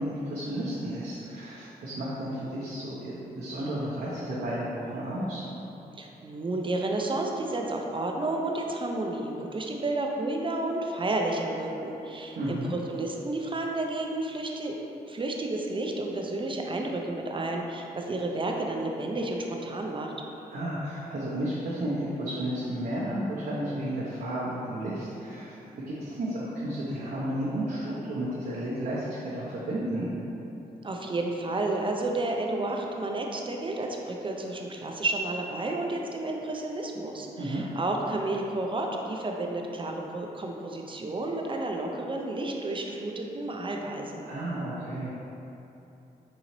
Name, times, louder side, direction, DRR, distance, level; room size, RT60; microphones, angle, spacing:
voice 1, 0.0-5.4 12.4-12.7 20.5-30.1 37.4-37.6 44.2-45.1, right 1 dB, 65° right, -8 dB, 0.7 m, -32 dB
voice 2, 6.0-14.8 15.1-20.1 30.8-44.3, right 2 dB, 30° right, 1 dB, 0.5 m, -31 dB
4.0 x 2.7 x 3.0 m, 2.9 s
supercardioid pair, 50°, 17 cm